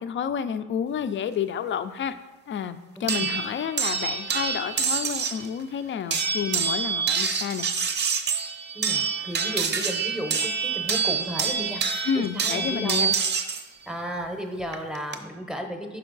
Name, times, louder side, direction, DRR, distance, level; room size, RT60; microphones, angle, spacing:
voice 1, 0.0-2.2 2.5-7.7 12.0-13.2, left 7 dB, 40° left, 12 dB, 0.4 m, -30 dB
voice 2, 3.0-3.3 8.7-11.8 12.1-13.1 13.9-16.0, equal, ahead, 4 dB, 0.7 m, -34 dB
sound 1, 3.1-5.5 6.1-13.6 14.7-15.2, right 5 dB, 35° right, 0.6 m, -27 dB
5.5 x 4.4 x 3.9 m, 1.1 s
cardioid pair, 90°, 30 cm